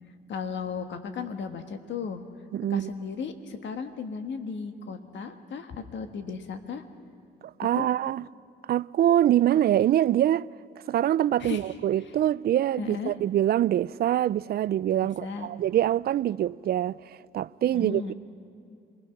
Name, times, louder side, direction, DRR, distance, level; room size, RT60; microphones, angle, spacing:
voice 1, 0.3-2.2 2.7-6.8 7.7-7.9 11.4-11.7 12.8-13.1 15.2-15.5 17.7-18.1, left 5 dB, 65° left, 1.6 m, -35 dB
voice 2, 2.5-2.9 7.6-8.2 8.7-10.5 10.9-17.0 17.3-18.1, right 12 dB, 50° right, 0.4 m, -24 dB
26.0 x 20.5 x 6.0 m
cardioid pair, 90°, 20 cm